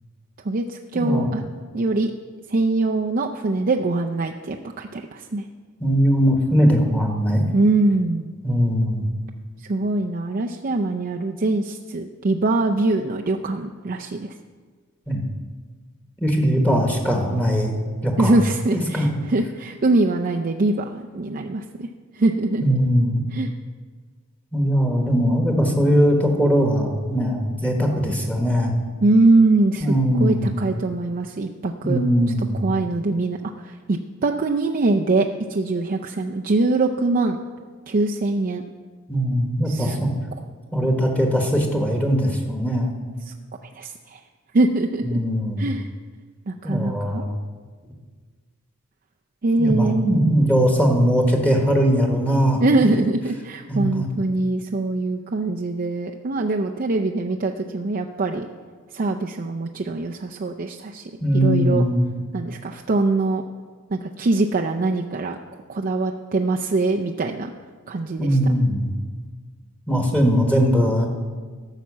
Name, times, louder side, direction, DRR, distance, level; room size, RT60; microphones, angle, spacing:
voice 1, 0.4-1.4 1.7-2.1 2.5-5.5 7.5-8.3 9.7-14.3 18.2-21.9 22.1-22.6 23.3-23.5 29.0-32.0 32.6-37.4 37.9-38.6 39.7-40.0 43.3-43.4 43.7-44.2 44.5-45.0 45.6-45.9 46.5-47.2 49.4-50.4 52.6-58.5 58.9-61.8 62.3-63.4 63.9-65.4 65.7-67.5 67.9-68.4, right 2 dB, 40° right, 2 dB, 0.5 m, -23 dB
voice 2, 0.9-1.3 5.8-7.5 8.4-9.0 15.1-15.2 16.2-17.8 18.0-18.4 18.7-19.1 22.6-23.2 24.5-28.7 29.8-30.5 31.8-32.7 39.1-40.1 40.7-42.9 45.0-45.7 46.6-47.3 49.6-52.6 53.7-54.0 61.2-62.1 68.2-68.9 69.9-71.1, equal, 5° left, 1 dB, 1.3 m, -20 dB
13.0 x 5.8 x 7.3 m, 1.5 s
head